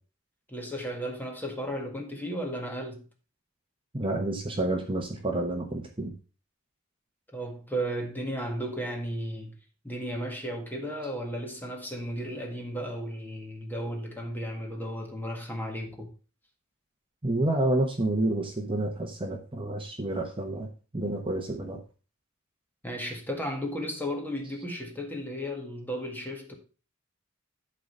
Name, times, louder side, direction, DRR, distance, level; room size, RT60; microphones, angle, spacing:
voice 1, 0.5-3.0 7.3-9.6 9.8-16.1 22.8-26.5, equal, 10° left, 1.7 m, -34 dB
voice 2, 3.9-6.1 17.2-20.7 20.9-21.8, right 1 dB, 25° right, 1.0 m, -29 dB
11.5 x 4.0 x 5.4 m
head